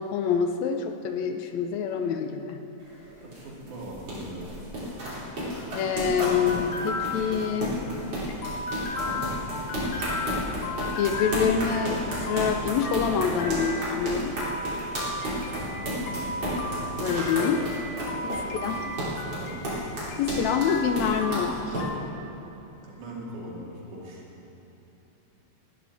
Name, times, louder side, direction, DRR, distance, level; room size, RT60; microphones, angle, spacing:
voice 1, 0.0-2.6 5.7-7.8 11.0-14.4 17.0-17.7 18.2-18.9 20.2-21.9, left 7 dB, 75° left, 6 dB, 1.8 m, -26 dB
sound 1, 2.8-21.8, equal, 40° right, 4.2 m, -32 dB
voice 2, 3.2-4.7 15.6-16.4 18.2-19.6 22.8-24.3, right 1 dB, 80° right, -4 dB, 3.8 m, -41 dB
sound 2, 5.3-22.0, left 2 dB, 55° left, 1.7 m, -35 dB
19.0 x 12.0 x 4.1 m, 3.0 s
omnidirectional pair, 3.5 m